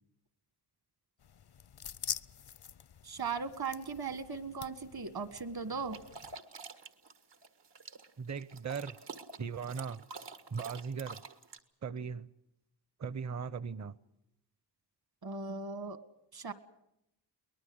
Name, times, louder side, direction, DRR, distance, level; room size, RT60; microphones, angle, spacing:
sound 1, 1.2-6.4, left 8 dB, 70° left, 0.8 m, -45 dB
voice 1, 3.0-6.0 15.2-16.0 16.3-16.5, right 5 dB, 60° right, 13 dB, 1.8 m, -38 dB
sound 2, 5.9-11.6, right 4 dB, 85° right, 1.8 m, -48 dB
voice 2, 8.2-9.0 9.4-10.0 10.5-11.2 11.8-12.3 13.0-13.9, right 6 dB, 40° right, 18 dB, 0.8 m, -38 dB
23.0 x 19.5 x 8.0 m, 0.81 s
wide cardioid pair, 90°, 41 cm